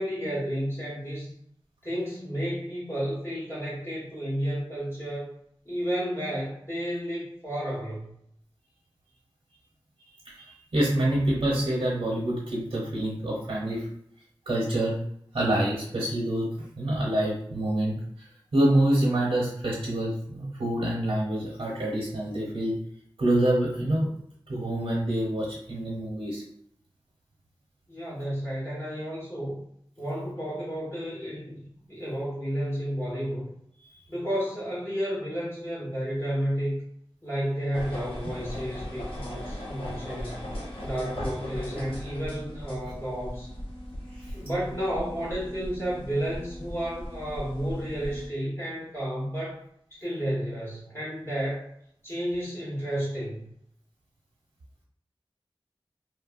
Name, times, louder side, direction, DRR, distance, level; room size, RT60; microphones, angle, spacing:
voice 1, 0.0-1.3 1.8-5.3 5.6-8.1 27.9-29.6 30.0-31.6 31.9-33.5 34.1-36.7 37.2-40.4 40.8-43.5 44.3-49.6 49.9-51.7 52.0-53.4, equal, 30° left, -8 dB, 1.3 m, -31 dB
voice 2, 10.3-13.9 14.5-14.9 15.3-16.5 16.8-17.9 18.5-22.7 23.2-24.1 24.5-26.4, right 1 dB, 85° right, -5 dB, 0.8 m, -26 dB
sound 1, 37.7-48.3, equal, 80° left, 0.7 m, -38 dB
3.2 x 2.1 x 2.4 m, 0.69 s
wide cardioid pair, 50°, 9 cm